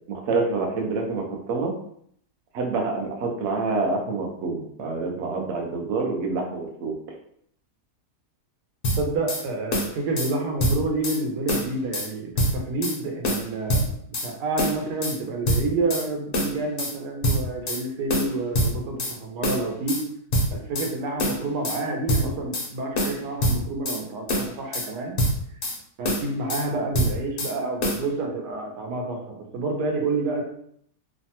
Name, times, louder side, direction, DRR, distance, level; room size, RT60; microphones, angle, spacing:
voice 1, 0.1-1.7 2.5-7.0, right 3 dB, 65° right, 1 dB, 0.7 m, -27 dB
sound 1, 8.8-9.4 9.7-10.3 10.6-11.2 11.5-12.1 12.4-13.0 13.2-14.3 14.6-15.2 15.5-16.1 16.3-16.9 17.2-17.8 18.1-19.2 19.4-20.0 20.3-20.9 21.2-21.8 22.1-22.7 23.0-24.0 24.3-24.9 25.2-25.8 26.0-26.7 26.9-27.5 27.8-28.0, equal, 65° left, 0.5 m, -25 dB
voice 2, 9.0-13.9 14.2-20.0 20.5-25.2 26.0-30.4, right 3 dB, 90° right, 1 dB, 1.3 m, -29 dB
3.1 x 2.1 x 2.8 m, 0.66 s
omnidirectional pair, 1.7 m